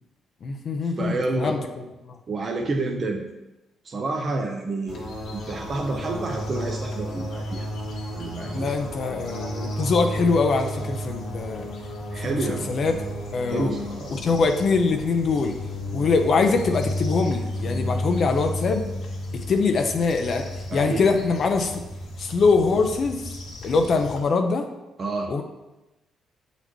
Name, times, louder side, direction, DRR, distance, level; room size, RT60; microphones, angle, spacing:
voice 1, 0.4-1.6 2.1-2.2 8.5-11.7 12.2-12.9 13.3-13.7 14.1-15.5 15.9-18.8 19.3-21.8 22.2-23.3 23.6-24.7 25.3-25.4, left 4 dB, 55° left, 5 dB, 0.5 m, -23 dB
voice 2, 1.0-1.6 2.3-3.3 3.8-7.7 8.1-8.7 9.1-9.6 12.1-12.7 13.5-14.2 20.7-21.0 25.0-25.3, right 2 dB, 40° right, 1 dB, 0.6 m, -29 dB
sound 1, 4.9-24.2, left 1 dB, 75° left, 1.6 m, -33 dB
7.9 x 4.1 x 3.0 m, 1.0 s
cardioid pair, 90°, 0 cm